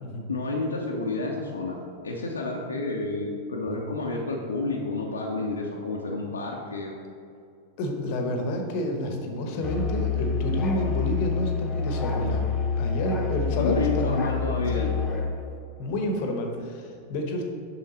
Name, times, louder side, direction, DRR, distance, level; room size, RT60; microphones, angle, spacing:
voice 1, 0.3-1.8 2.0-6.9 13.6-14.9, left 3 dB, 75° left, -1 dB, 0.8 m, -30 dB
voice 2, 7.8-12.4 12.8-14.2 14.8-15.0 15.8-17.4, left 1 dB, 45° left, 3 dB, 1.0 m, -29 dB
Musical instrument, 9.6-15.3, left 5 dB, 25° left, 1.0 m, -27 dB
7.4 x 5.7 x 4.1 m, 2.4 s
figure-of-eight pair, 90°, 0 cm